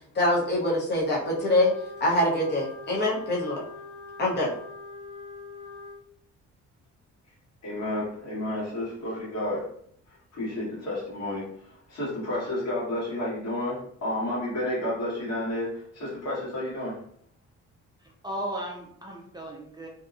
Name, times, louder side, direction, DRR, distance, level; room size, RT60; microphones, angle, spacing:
voice 1, 0.1-1.7 2.0-3.6 4.2-4.5, left 1 dB, 35° left, -3 dB, 0.8 m, -24 dB
Wind instrument woodwind instrument, 1.1-6.0, left 3 dB, 85° left, 0.8 m, -43 dB
voice 2, 7.6-9.7 10.3-17.0, left 1 dB, 60° left, -6 dB, 1.5 m, -31 dB
voice 3, 18.0-19.9, right 1 dB, 15° right, -1 dB, 0.4 m, -36 dB
2.7 x 2.2 x 2.4 m, 0.64 s
cardioid pair, 90°, 30 cm